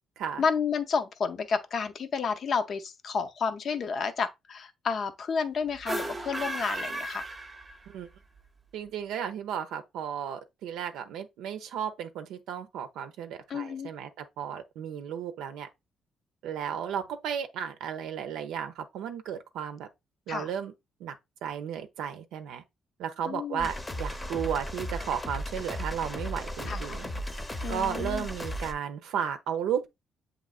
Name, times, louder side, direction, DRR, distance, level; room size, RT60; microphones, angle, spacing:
voice 1, 0.4-7.3 13.5-13.9 20.3-20.5 23.3-23.7 26.7-27.0 27.6-28.3, left 5 dB, 55° left, 0.6 m, -31 dB
sound 1, 5.7-8.1, right 1 dB, 20° right, 0.6 m, -35 dB
voice 2, 8.7-15.7 16.4-19.9 20.3-20.7 21.0-21.2 21.4-22.6 23.0-27.1 27.7-29.9, right 8 dB, 85° right, 0.6 m, -34 dB
sound 2, 23.6-28.7, equal, 15° left, 0.7 m, -35 dB
7.3 x 3.0 x 2.4 m
cardioid pair, 90°, 0 cm